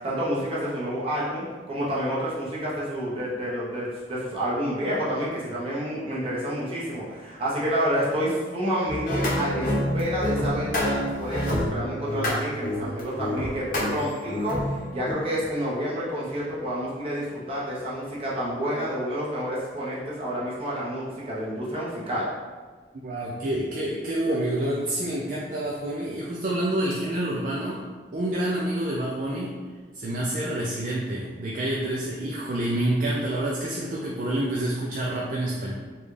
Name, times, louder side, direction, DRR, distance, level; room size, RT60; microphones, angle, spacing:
voice 1, 0.0-22.3, equal, 30° right, -8 dB, 0.9 m, -29 dB
sound 1, 8.9-15.1, left 1 dB, 50° left, 0.9 m, -27 dB
voice 2, 22.9-27.8 28.1-29.6 29.9-35.7, right 1 dB, 50° right, -4 dB, 0.4 m, -28 dB
3.9 x 2.3 x 3.2 m, 1.4 s
head